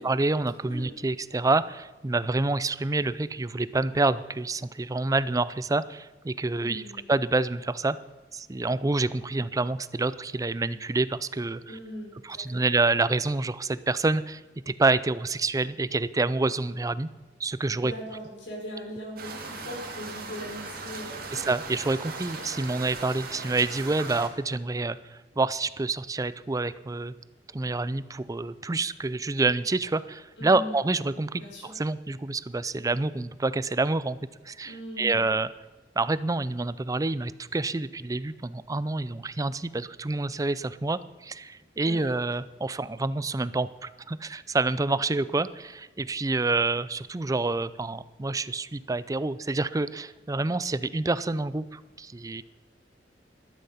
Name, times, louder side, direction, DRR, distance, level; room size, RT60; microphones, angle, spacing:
voice 1, 0.0-6.8 7.1-8.0 8.3-11.6 12.3-14.4 14.7-17.1 17.4-17.9 21.3-27.1 27.5-34.2 34.5-35.5 36.0-52.4, right 3 dB, 20° right, 16 dB, 0.4 m, -27 dB
voice 2, 6.5-7.1 11.7-12.7 17.8-21.3 30.4-30.8 31.4-31.7 34.6-35.3 41.8-42.1, equal, 85° left, -1 dB, 5.1 m, -40 dB
sound 1, 19.2-24.3, right 4 dB, 55° right, 2.2 m, -38 dB
13.0 x 12.5 x 5.7 m, 1.2 s
head